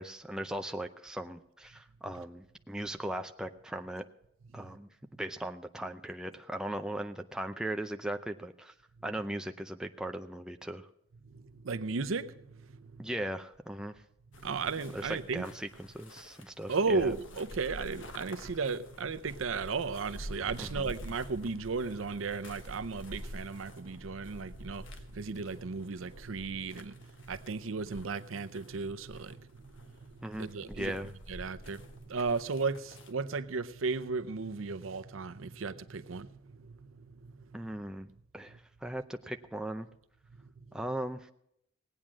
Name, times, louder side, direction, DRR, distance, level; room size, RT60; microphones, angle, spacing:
voice 1, 0.0-4.0 4.5-4.9 5.2-8.7 9.0-10.9 13.0-14.0 14.9-17.1 20.6-20.9 30.2-31.1 37.5-39.9 40.7-41.3, right 1 dB, 5° right, 0.5 m, -38 dB
voice 2, 11.6-12.3 14.4-15.4 16.7-24.9 25.1-26.9 27.3-29.4 30.4-31.0 31.3-31.8 32.1-36.3, right 4 dB, 90° right, 0.7 m, -34 dB
sound 1, 14.3-33.1, equal, 75° left, 1.3 m, -48 dB
18.0 x 8.9 x 6.2 m
head